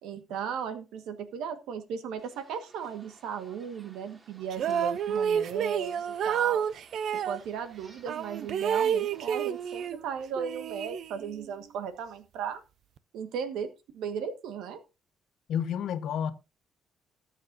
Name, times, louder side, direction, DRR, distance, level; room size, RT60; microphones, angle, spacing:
voice 1, 0.0-6.6 7.2-12.6 13.1-13.7 13.9-14.8, right 7 dB, 90° right, 1.5 m, -36 dB
sound 1, 2.2-9.9, right 2 dB, 25° right, 2.8 m, -57 dB
sound 2, 4.5-7.4 8.1-10.0 10.4-11.5, right 8 dB, 60° right, 0.6 m, -29 dB
voice 2, 15.5-16.3, left 8 dB, 65° left, 1.1 m, -30 dB
20.0 x 7.5 x 2.7 m
cardioid pair, 125°, 0 cm